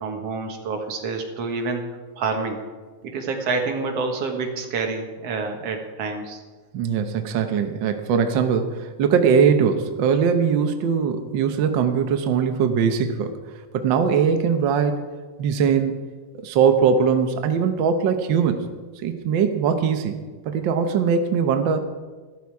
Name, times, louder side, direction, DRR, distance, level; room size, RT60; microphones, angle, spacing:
voice 1, 0.0-1.8 2.2-2.6 3.0-6.4, right 4 dB, 60° right, 3 dB, 2.3 m, -27 dB
voice 2, 6.7-13.4 13.7-15.0 15.4-16.0 16.4-18.6 19.0-21.8, right 6 dB, 85° right, 7 dB, 1.0 m, -21 dB
13.0 x 12.5 x 4.7 m, 1.4 s
omnidirectional pair, 3.5 m